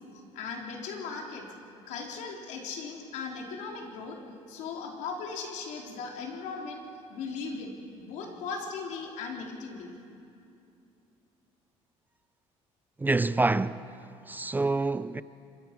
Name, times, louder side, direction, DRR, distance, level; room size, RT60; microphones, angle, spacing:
voice 1, 0.0-1.5 1.9-4.2 4.5-9.9, left 4 dB, 80° left, 3.6 m, -38 dB
voice 2, 13.0-13.9 14.3-15.2, right 3 dB, 15° right, 0.5 m, -27 dB
26.0 x 23.5 x 6.0 m
cardioid pair, 110°, 12 cm